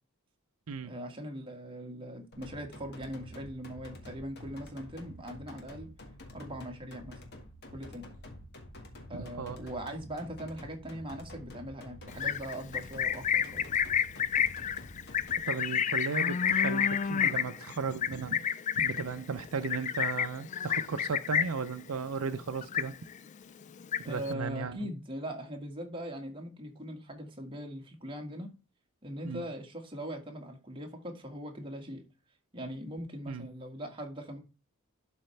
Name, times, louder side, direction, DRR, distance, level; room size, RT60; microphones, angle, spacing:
voice 1, 0.8-5.9 6.3-7.2 7.7-8.1 9.1-13.7 24.0-28.5 29.0-32.0 32.5-34.4, equal, 25° right, 1.8 m, -41 dB
sound 1, 2.3-15.4, left 1 dB, 50° left, 1.8 m, -48 dB
voice 2, 9.1-9.6 15.5-18.5 18.8-23.0 24.0-24.9 29.2-29.4 33.3-33.5, right 5 dB, 75° right, 0.6 m, -36 dB
Livestock farm animals working animals, 12.1-21.7 22.0-22.4 22.6-23.3 23.6-24.3, left 8 dB, 35° left, 0.3 m, -30 dB
12.0 x 4.3 x 3.3 m
head